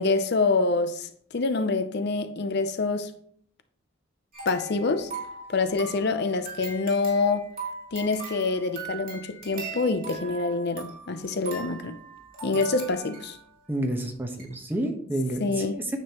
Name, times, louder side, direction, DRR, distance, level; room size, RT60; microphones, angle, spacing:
voice 1, 0.0-3.1 4.5-5.1 5.5-7.5 7.9-12.0 12.4-13.4 15.4-15.8, left 3 dB, 50° left, 0.5 m, -26 dB
sound 1, 4.3-13.5 14.0-14.1 14.4-14.5, right 4 dB, 45° right, 3.0 m, -40 dB
voice 2, 13.7-16.0, right 1 dB, 10° right, 1.1 m, -30 dB
9.5 x 7.5 x 3.0 m
head